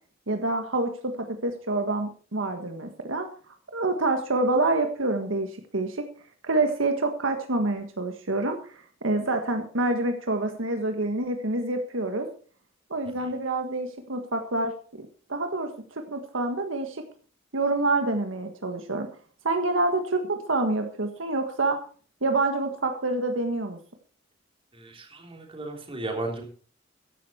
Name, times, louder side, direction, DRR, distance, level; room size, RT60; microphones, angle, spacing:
voice 1, 0.3-3.3 3.7-6.1 6.4-12.3 12.9-14.7 15.0-17.0 17.5-19.1 19.4-21.8 22.2-23.8, right 2 dB, 75° right, 5 dB, 1.6 m, -27 dB
voice 2, 24.7-26.4, right 2 dB, 30° right, 2 dB, 3.4 m, -35 dB
14.5 x 11.0 x 4.3 m, 0.40 s
head